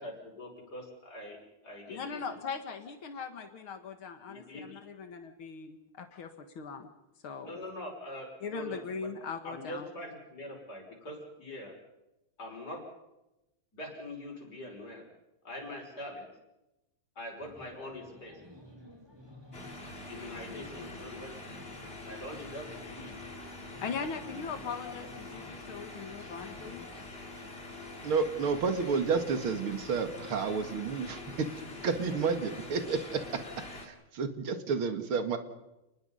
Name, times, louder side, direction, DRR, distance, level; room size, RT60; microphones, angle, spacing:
voice 1, 0.0-2.2 4.3-4.7 7.4-9.1 9.4-11.7 12.4-12.8 13.7-15.0 15.4-16.2 17.2-18.4 20.0-21.3 22.0-23.1, left 1 dB, 45° left, 0 dB, 6.4 m, -43 dB
voice 2, 1.9-6.9 7.2-7.5 8.4-9.9 23.8-26.9, left 5 dB, 75° left, 7 dB, 2.4 m, -40 dB
sound 1, 17.4-27.1, left 1 dB, 10° right, 4.0 m, -53 dB
sound 2, 19.5-33.9, left 2 dB, 25° left, 3.4 m, -45 dB
voice 3, 28.0-31.5 31.8-33.4 33.9-35.4, right 5 dB, 80° right, 8 dB, 2.8 m, -30 dB
30.0 x 20.5 x 5.6 m, 0.93 s
omnidirectional pair, 2.3 m